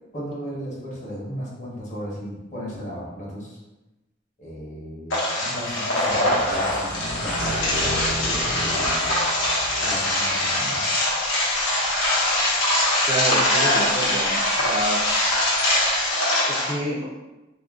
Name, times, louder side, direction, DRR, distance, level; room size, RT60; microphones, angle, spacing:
voice 1, 0.1-3.6 4.4-9.1 9.8-10.8, equal, 40° left, -5 dB, 0.9 m, -35 dB
sound 1, 5.1-16.7, left 1 dB, 85° left, 0.8 m, -23 dB
sound 2, 6.1-11.0, equal, 75° right, 0.9 m, -33 dB
sound 3, 11.1-16.1, left 1 dB, 20° left, 0.6 m, -39 dB
voice 2, 13.1-15.0 16.5-17.1, right 1 dB, 30° right, -3 dB, 0.4 m, -28 dB
2.5 x 2.1 x 3.5 m, 1.0 s
head